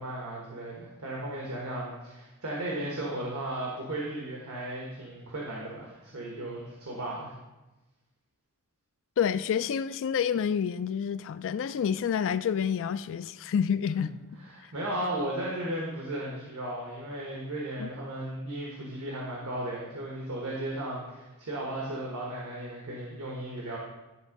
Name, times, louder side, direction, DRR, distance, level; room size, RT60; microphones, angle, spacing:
voice 1, 0.0-7.3 14.4-23.8, right 1 dB, 85° right, 1.3 m, -35 dB
voice 2, 9.2-14.1 17.8-17.9, left 7 dB, 60° left, 0.3 m, -28 dB
10.5 x 3.6 x 5.1 m
head